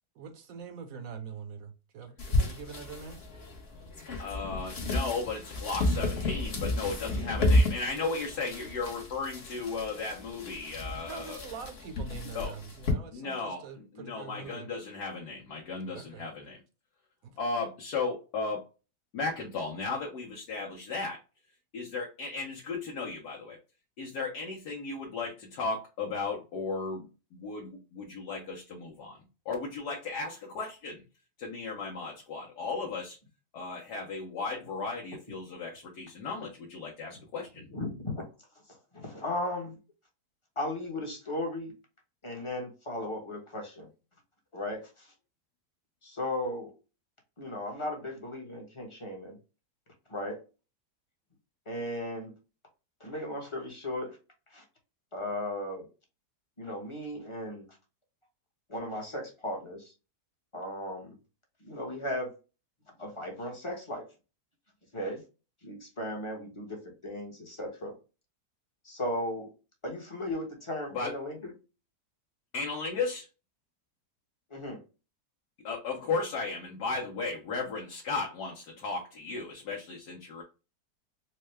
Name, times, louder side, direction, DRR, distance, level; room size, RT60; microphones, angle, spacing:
voice 1, 0.1-3.2 6.9-7.4 11.1-14.7 15.9-16.3 17.2-17.4, right 6 dB, 65° right, 6 dB, 1.1 m, -44 dB
sound 1, 2.2-12.9, left 1 dB, 45° left, 1.1 m, -31 dB
voice 2, 4.2-11.4 12.3-12.5 13.1-13.6 13.9-16.6 17.4-18.6 19.1-21.2 21.7-23.6 24.0-29.2 29.5-31.0 31.4-33.2 33.5-37.6 70.9-71.1 72.5-73.3 75.6-80.4, left 4 dB, 80° left, -1 dB, 1.4 m, -35 dB
voice 3, 37.7-38.3 38.7-39.8 40.6-41.7 42.2-43.9 44.5-45.1 46.0-46.7 47.4-49.4 50.1-50.4 51.7-52.3 53.0-54.2 54.5-54.6 55.1-55.9 56.6-57.6 58.7-59.9 60.5-61.2 61.6-62.4 63.0-64.1 64.9-65.2 65.6-67.9 68.8-69.5 69.8-71.5 74.5-74.8, left 1 dB, 20° left, 1 dB, 0.9 m, -36 dB
4.5 x 2.2 x 3.1 m, 0.31 s
omnidirectional pair, 1.7 m